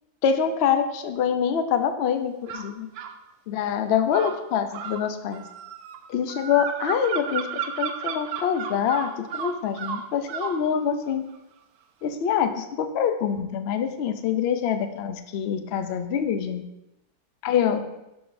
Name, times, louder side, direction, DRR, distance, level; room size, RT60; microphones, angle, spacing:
voice 1, 0.2-2.9 3.5-5.4 6.1-7.5 7.8-11.2 12.0-16.6 17.4-17.8, left 8 dB, 65° left, 8 dB, 0.6 m, -25 dB
sound 1, 2.5-3.2 4.1-10.6, right 7 dB, 75° right, 1.1 m, -33 dB
11.0 x 5.0 x 2.6 m, 0.92 s
omnidirectional pair, 1.7 m